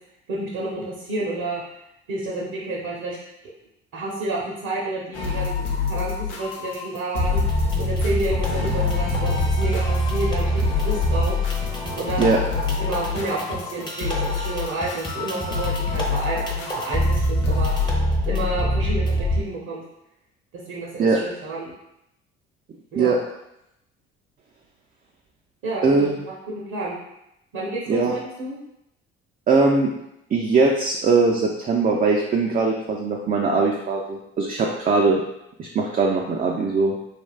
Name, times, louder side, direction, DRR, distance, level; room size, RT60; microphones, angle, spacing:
voice 1, 0.3-1.6 2.1-3.2 3.4-3.5 3.9-7.4 7.8-11.4 11.9-12.5 12.8-17.7 18.2-19.8 20.5-21.7 22.9-23.1 25.6-27.0 27.5-28.6 34.6-34.7, right 2 dB, 60° right, -4 dB, 0.8 m, -30 dB
sound 1, 5.1-17.9, left 6 dB, 85° left, 0.6 m, -28 dB
sound 2, 7.2-19.4, left 1 dB, 15° left, 0.7 m, -25 dB
voice 2, 25.8-26.2 27.9-28.1 29.5-29.9 30.3-35.2 35.6-37.0, right 4 dB, 25° right, -1 dB, 0.4 m, -20 dB
3.3 x 2.4 x 2.3 m, 0.85 s
hypercardioid pair, 60°, 33 cm